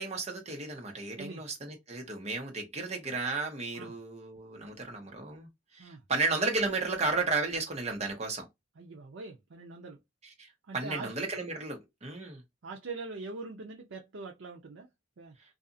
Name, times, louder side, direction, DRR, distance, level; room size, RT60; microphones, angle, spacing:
voice 1, 0.0-8.5 10.4-10.5 10.7-12.4, right 3 dB, 35° right, 1.0 m, -33 dB
voice 2, 8.8-10.0 10.7-11.1 12.6-14.9 15.2-15.3, right 3 dB, 75° right, 0.6 m, -42 dB
2.6 x 2.4 x 2.5 m
head